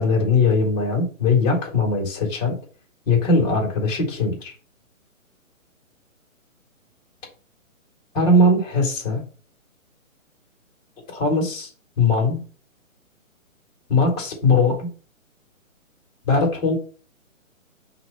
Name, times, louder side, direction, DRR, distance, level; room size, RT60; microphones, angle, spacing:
voice 1, 0.0-2.6 3.1-4.5 8.1-9.2 11.1-11.7 12.0-12.4 13.9-14.9 16.2-16.8, left 3 dB, 30° left, -1 dB, 2.6 m, -20 dB
5.9 x 3.1 x 5.6 m, 0.37 s
hypercardioid pair, 150°, 41 cm